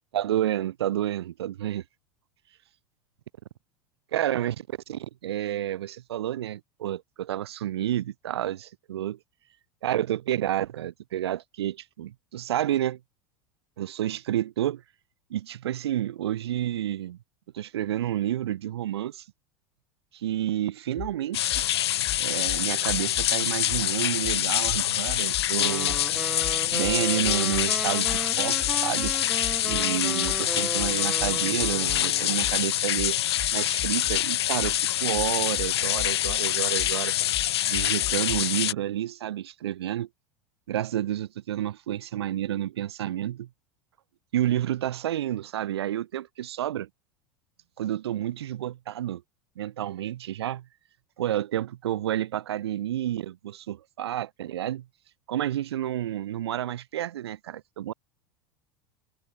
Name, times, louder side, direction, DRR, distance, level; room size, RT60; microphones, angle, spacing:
voice 1, 0.1-1.8 4.1-9.2 9.8-13.0 13.8-14.8 15.3-17.2 17.5-19.3 20.1-21.6 22.2-26.0 26.7-29.1 29.6-33.2 33.5-37.1 37.7-40.1 40.7-43.5 44.3-46.9 47.8-49.2 49.6-50.7 51.2-54.9 55.3-57.9, right 12 dB, 75° right, 3.4 m, -30 dB
sound 1, 21.0-21.1 21.5-21.7 22.0-23.3 23.7-23.9 24.2-25.5 25.9-26.0 26.4-27.7 28.0-32.0 32.4-38.4, left 15 dB, 45° left, 3.6 m, -38 dB
sound 2, 21.3-38.7, left 12 dB, 80° left, 0.6 m, -26 dB
sound 3, 25.6-32.5, right 1 dB, 5° right, 6.2 m, -36 dB
open air
hypercardioid pair, 85°, 13 cm